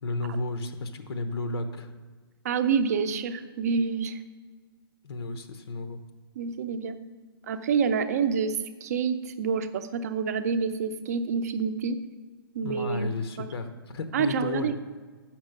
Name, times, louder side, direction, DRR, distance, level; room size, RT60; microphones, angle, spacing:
voice 1, 0.0-1.9 5.0-6.0 12.6-14.7, left 3 dB, 85° left, 9 dB, 0.8 m, -33 dB
voice 2, 2.4-4.2 6.4-7.0 7.5-12.0 12.5-13.5 14.1-14.8, right 6 dB, 40° right, 10 dB, 0.5 m, -28 dB
7.2 x 6.0 x 6.4 m, 1.4 s
hypercardioid pair, 170°, 13 cm